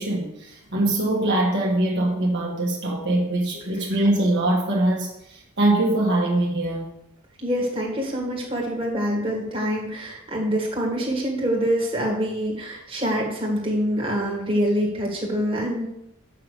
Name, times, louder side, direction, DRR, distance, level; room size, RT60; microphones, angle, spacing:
voice 1, 0.0-6.9, right 1 dB, 55° right, -2 dB, 1.6 m, -23 dB
voice 2, 7.4-15.9, equal, 25° right, -2 dB, 1.9 m, -25 dB
6.8 x 5.7 x 6.6 m, 0.79 s
head